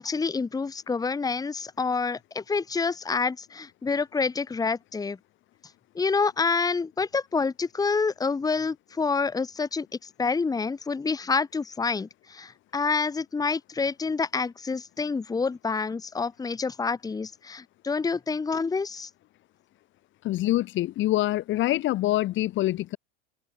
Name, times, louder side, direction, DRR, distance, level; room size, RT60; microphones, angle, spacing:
voice 1, 0.0-5.2 6.0-19.1, left 4 dB, 10° left, 3.7 m, -28 dB
voice 2, 20.2-23.0, left 15 dB, 35° left, 4.2 m, -25 dB
open air
supercardioid pair, 150°, 32 cm